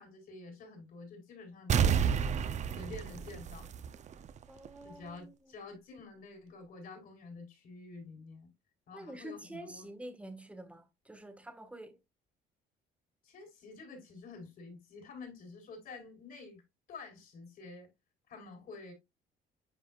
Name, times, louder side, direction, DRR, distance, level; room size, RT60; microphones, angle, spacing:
voice 1, 0.0-2.2 2.7-3.7 4.8-8.5 8.9-10.0 13.2-16.6 16.9-17.9 18.3-18.9, left 3 dB, 60° left, 4.4 m, -49 dB
sound 1, 1.7-4.3 4.6-4.7, right 7 dB, 45° right, 0.6 m, -30 dB
voice 2, 4.5-5.3 8.9-12.0, right 1 dB, 5° right, 1.6 m, -47 dB
10.0 x 4.6 x 2.4 m
cardioid pair, 110°, 17 cm